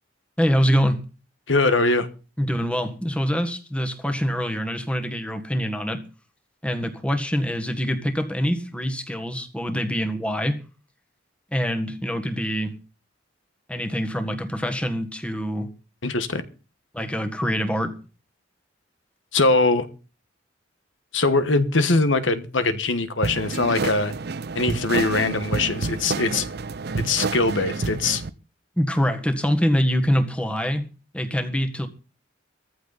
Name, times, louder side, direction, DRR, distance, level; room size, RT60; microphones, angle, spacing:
voice 1, 0.4-1.0 2.4-6.0 6.6-10.6 11.5-12.7 13.7-15.7 16.9-17.9 28.8-30.9 31.1-31.9, equal, 5° left, 1.6 m, -24 dB
voice 2, 1.5-2.1 16.0-16.4 19.3-19.9 21.1-24.1 24.5-26.5 27.0-28.2, left 3 dB, 80° left, 1.4 m, -22 dB
sound 1, 23.2-28.3, right 3 dB, 55° right, 0.7 m, -29 dB
15.0 x 14.5 x 4.1 m
head